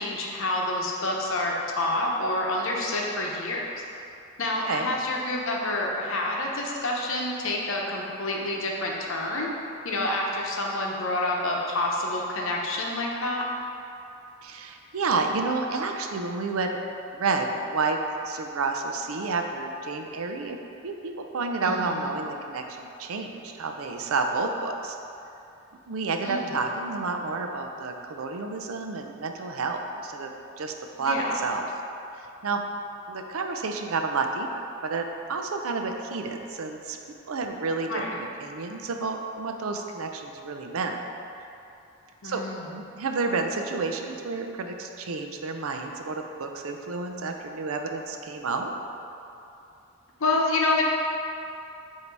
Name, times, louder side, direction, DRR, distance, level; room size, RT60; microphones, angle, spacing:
voice 1, 0.0-3.6 4.4-9.5 9.8-13.4 21.6-22.1 26.2-26.5 31.0-31.4 37.9-38.1 42.2-42.7 50.2-50.8, left 2 dB, 65° left, -2 dB, 0.8 m, -28 dB
voice 2, 14.4-16.8 17.1-20.6 20.8-25.0 25.9-31.7 32.1-32.6 33.1-37.0 37.3-41.0 41.4-41.5 42.2-42.4 42.7-48.7, right 3 dB, 75° right, 4 dB, 0.5 m, -30 dB
8.0 x 2.8 x 4.7 m, 2.8 s
head